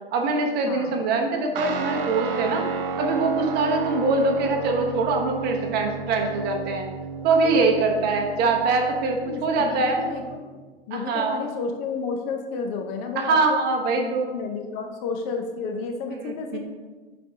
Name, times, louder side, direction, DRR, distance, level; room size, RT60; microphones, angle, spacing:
voice 1, 0.1-2.6 3.0-6.9 7.2-10.0 10.9-11.4 13.2-14.3 16.5-16.6, right 3 dB, 35° right, 2 dB, 1.0 m, -23 dB
Guitar, 1.6-10.4, right 5 dB, 65° right, 0.9 m, -32 dB
voice 2, 7.4-8.1 9.2-10.6 10.9-13.6 13.9-16.6, left 5 dB, 40° left, 4 dB, 0.8 m, -32 dB
9.8 x 4.3 x 2.8 m, 1.3 s
hypercardioid pair, 110°, 30 cm